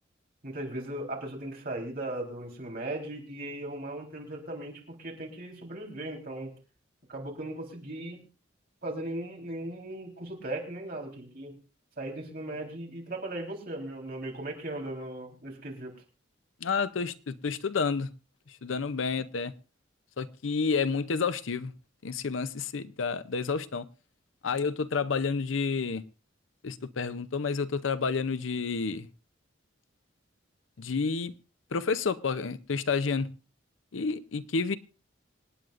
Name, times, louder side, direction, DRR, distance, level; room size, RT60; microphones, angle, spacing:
voice 1, 0.4-6.5 7.1-8.2 8.8-11.5 12.0-15.9, right 1 dB, 50° right, 3.9 m, -37 dB
voice 2, 16.6-18.1 18.6-19.5 20.2-21.7 22.0-23.9 24.4-26.0 26.6-29.1 30.8-31.3 31.7-33.3 33.9-34.8, left 5 dB, 80° left, 0.6 m, -30 dB
26.5 x 9.3 x 2.5 m
head